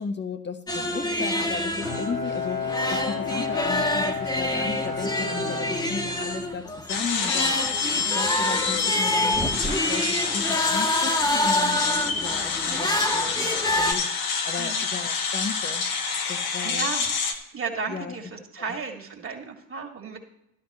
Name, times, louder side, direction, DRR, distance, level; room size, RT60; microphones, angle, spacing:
voice 1, 0.0-15.9 16.3-16.9 17.9-18.2 18.6-18.7, left 5 dB, 25° left, 7 dB, 1.4 m, -35 dB
sound 1, 0.7-13.9, left 1 dB, 10° left, 1.6 m, -27 dB
Bowed string instrument, 1.8-6.7, left 5 dB, 85° left, 2.0 m, -31 dB
sound 2, 6.9-17.3, left 5 dB, 60° left, 1.7 m, -27 dB
voice 2, 14.6-14.9 16.6-17.1 17.5-20.2, right 5 dB, 30° right, 1 dB, 2.4 m, -34 dB
13.5 x 12.0 x 3.1 m, 0.83 s
hypercardioid pair, 65°, 41 cm